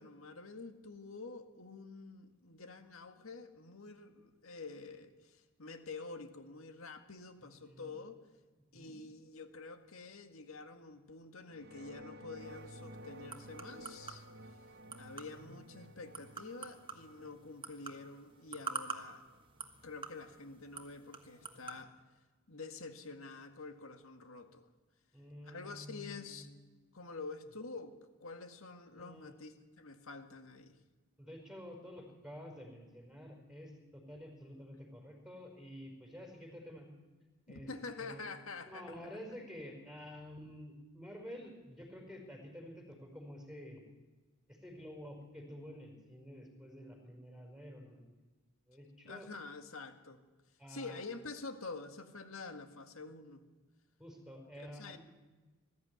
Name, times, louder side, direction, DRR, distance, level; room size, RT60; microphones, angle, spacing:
voice 1, 0.0-8.2 8.7-14.3 14.9-19.2 19.8-21.9 22.5-24.7 25.4-26.5 26.9-30.8 37.5-39.1 49.0-50.2 50.7-53.4 54.6-55.0, left 3 dB, 75° left, 7 dB, 1.9 m, -48 dB
voice 2, 7.4-8.0 8.7-9.0 25.1-26.5 28.9-29.3 31.2-36.9 37.5-37.7 38.0-38.2 38.6-43.8 44.5-48.1 48.7-49.3 50.6-51.0 54.0-55.0, equal, 5° right, 1 dB, 5.0 m, -50 dB
sound 1, 11.5-20.2, equal, 50° right, 1.0 m, -54 dB
sound 2, 12.4-21.8, right 5 dB, 25° right, 1.4 m, -48 dB
20.5 x 13.5 x 9.6 m, 1.2 s
head